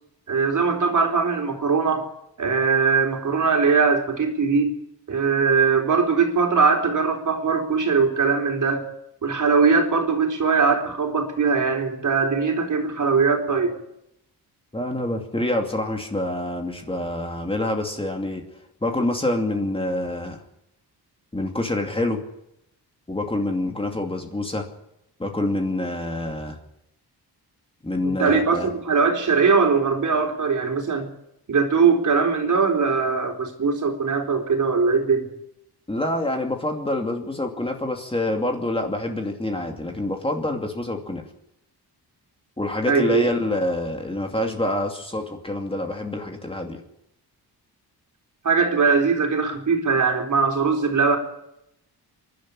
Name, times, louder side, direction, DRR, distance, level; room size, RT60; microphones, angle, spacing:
voice 1, 0.3-2.1 2.4-4.7 5.1-8.8 9.2-13.7 28.0-31.1 31.5-35.3 42.8-43.3 48.4-51.2, right 5 dB, 50° right, 2 dB, 3.9 m, -21 dB
voice 2, 14.7-18.4 18.8-20.4 21.3-22.2 23.1-24.6 25.2-26.6 27.8-28.7 35.9-41.2 42.6-46.8, left 1 dB, 15° left, 3 dB, 2.6 m, -26 dB
27.0 x 11.5 x 9.9 m, 0.82 s
wide cardioid pair, 125°, 40 cm